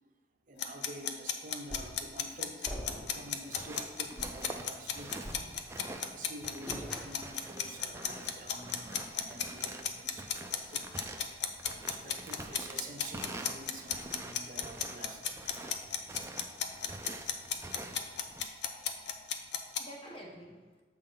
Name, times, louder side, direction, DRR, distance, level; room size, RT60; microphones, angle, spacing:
voice 1, 0.5-5.2 5.9-10.9 11.6-15.4, right 1 dB, 45° right, 5 dB, 0.7 m, -48 dB
sound 1, 0.6-19.8, left 8 dB, 65° left, 0.6 m, -34 dB
sound 2, 1.7-2.1 2.6-3.3 3.6-3.8 4.2-4.5 5.2-5.9 6.7-7.4, equal, 5° left, 1.0 m, -43 dB
sound 3, 3.1-18.5, right 2 dB, 15° right, 0.4 m, -47 dB
voice 2, 19.0-20.8, equal, 30° left, 0 dB, 1.2 m, -51 dB
7.5 x 3.8 x 5.5 m, 1.3 s
head